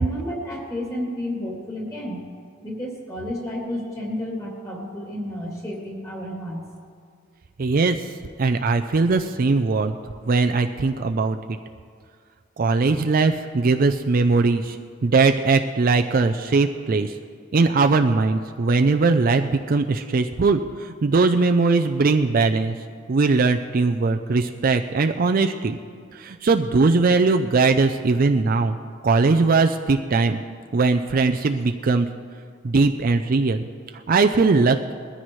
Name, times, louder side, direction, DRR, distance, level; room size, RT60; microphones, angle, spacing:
voice 1, 0.0-2.2 2.6-6.7, equal, 15° left, -2 dB, 2.6 m, -31 dB
voice 2, 7.6-8.1 8.4-9.9 10.3-11.4 12.6-14.8 15.0-17.1 17.5-22.8 23.1-25.8 26.1-28.8 29.0-30.4 30.7-32.1 32.6-33.6 34.1-34.9, right 3 dB, 45° right, 6 dB, 0.4 m, -20 dB
21.0 x 14.0 x 3.1 m, 2.1 s
head